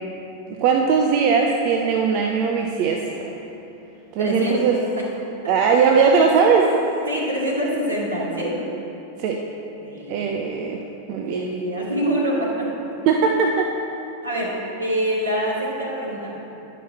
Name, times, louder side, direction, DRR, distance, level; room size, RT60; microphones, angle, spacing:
voice 1, 0.5-3.3 4.1-4.8 5.5-6.7 9.2-9.4 10.1-10.8 11.1-11.4 13.1-13.7, right 5 dB, 45° right, 1 dB, 0.6 m, -19 dB
voice 2, 4.2-5.0 7.1-8.6 9.8-10.3 11.2-12.7 14.2-16.3, equal, 75° right, -5 dB, 2.1 m, -25 dB
11.0 x 6.0 x 4.6 m, 2.9 s
figure-of-eight pair, 90°, 0 cm